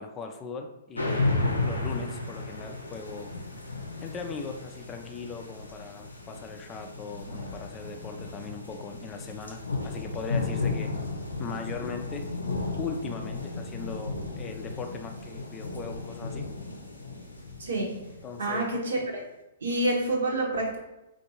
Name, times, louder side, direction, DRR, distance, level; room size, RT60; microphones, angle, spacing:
voice 1, 0.0-3.3 4.0-10.9 11.4-16.5 18.2-18.7, left 5 dB, 20° left, 4 dB, 0.4 m, -39 dB
sound 1, 0.9-18.8, left 3 dB, 90° left, 0.6 m, -34 dB
voice 2, 17.6-17.9 18.4-19.2 19.6-20.8, right 1 dB, 70° right, 0 dB, 0.9 m, -27 dB
4.3 x 2.5 x 2.8 m, 0.97 s
figure-of-eight pair, 115°, 0 cm